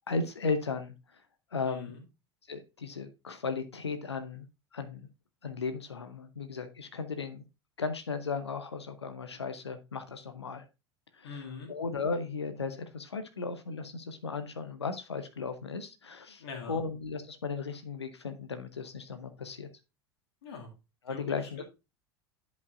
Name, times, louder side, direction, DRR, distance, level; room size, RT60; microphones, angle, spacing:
voice 1, 0.1-1.2 1.5-1.9 2.5-4.5 4.7-5.1 5.4-7.4 7.8-10.7 11.1-11.3 11.7-19.7 21.1-21.6, left 4 dB, 85° left, 9 dB, 0.7 m, -36 dB
voice 2, 1.6-2.0 11.2-11.7 16.4-16.8 20.4-20.7 21.1-21.6, left 5 dB, 70° left, 1 dB, 2.2 m, -42 dB
10.5 x 5.2 x 2.5 m, 0.27 s
figure-of-eight pair, 75°, 14 cm